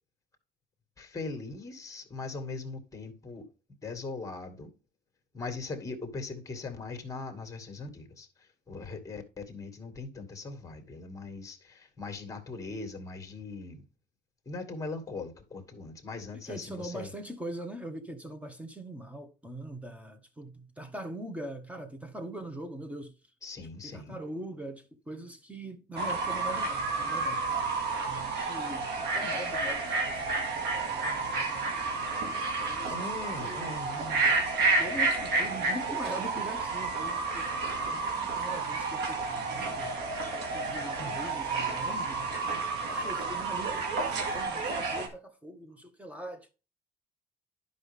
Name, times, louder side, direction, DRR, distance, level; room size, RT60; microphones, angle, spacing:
voice 1, 1.0-3.5 3.8-4.8 5.3-13.8 14.5-17.1 23.4-24.2 32.9-34.3 41.0-41.2, left 3 dB, 20° left, 2.1 m, -40 dB
voice 2, 16.5-23.1 23.8-27.5 28.0-31.7 32.4-32.9 33.4-33.7 34.7-37.5 37.8-40.0 40.5-42.4 42.9-46.5, right 1 dB, 10° right, 1.5 m, -42 dB
Fowl / Bird, 26.0-45.1, right 3 dB, 80° right, 2.0 m, -31 dB
11.0 x 5.4 x 3.5 m
cardioid pair, 110°, 17 cm